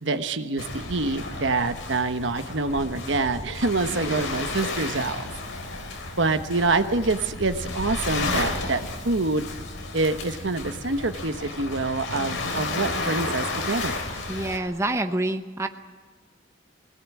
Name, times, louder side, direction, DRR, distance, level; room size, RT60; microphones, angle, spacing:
voice 1, 0.0-5.3 6.2-9.5 9.9-14.0, right 3 dB, 70° right, 8 dB, 1.2 m, -26 dB
Waves surf, 0.6-14.6, left 2 dB, 85° left, 3.6 m, -32 dB
voice 2, 14.3-15.7, right 1 dB, 15° right, 6 dB, 0.9 m, -27 dB
23.0 x 18.0 x 8.5 m, 1.4 s
head